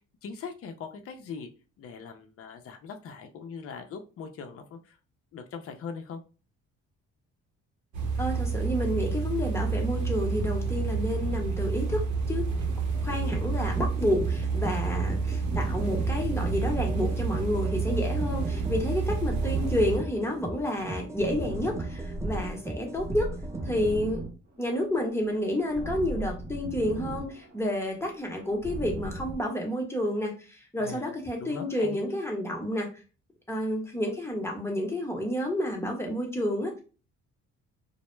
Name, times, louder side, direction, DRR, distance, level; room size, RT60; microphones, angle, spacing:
voice 1, 0.0-1.5 1.8-5.0 5.3-6.2 30.8-31.1 31.4-32.2, left 5 dB, 50° left, 5 dB, 0.5 m, -41 dB
sound 1, 7.9-20.0, right 4 dB, 70° right, 0.7 m, -29 dB
voice 2, 8.2-12.0 12.3-12.4 13.0-23.3 23.6-24.2 24.6-32.9 33.5-36.8, left 1 dB, 10° left, 0 dB, 0.8 m, -30 dB
sound 2, 12.9-24.0, right 2 dB, 10° right, 0.3 m, -39 dB
sound 3, 15.4-17.5 17.8-20.3 20.6-22.5 22.9-24.9 25.1-27.7 28.0-29.4, right 1 dB, 35° right, 0.8 m, -38 dB
2.1 x 2.1 x 3.1 m, 0.34 s
cardioid pair, 90°, 30 cm